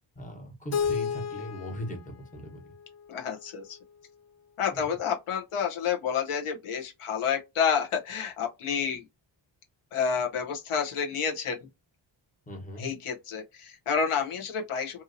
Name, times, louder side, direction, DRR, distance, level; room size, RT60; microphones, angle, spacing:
voice 1, 0.1-2.6 4.7-4.9 12.5-12.9, equal, 15° left, 1.1 m, -39 dB
Keyboard (musical), 0.7-3.6, left 6 dB, 35° left, 0.4 m, -33 dB
voice 2, 3.1-3.8 4.6-9.0 9.9-11.6 12.8-15.0, left 7 dB, 85° left, 1.0 m, -29 dB
2.7 x 2.7 x 2.6 m
wide cardioid pair, 135°, 50 cm